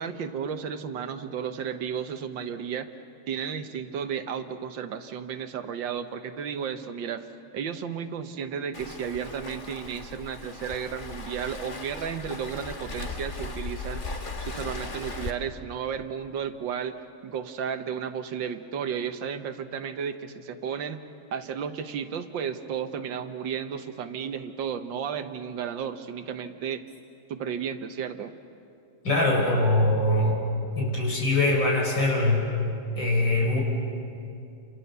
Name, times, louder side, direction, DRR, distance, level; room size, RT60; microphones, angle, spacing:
voice 1, 0.0-2.9 3.3-7.3 7.5-16.9 17.2-21.0 21.3-26.8 27.3-28.4, right 7 dB, 75° right, 9 dB, 1.8 m, -33 dB
Waves surf, 8.7-15.3, left 3 dB, 30° left, 1.3 m, -37 dB
voice 2, 29.0-30.4 30.8-32.5 33.0-33.6, left 2 dB, 70° left, 0 dB, 5.3 m, -23 dB
30.0 x 26.5 x 6.8 m, 2.6 s
omnidirectional pair, 2.1 m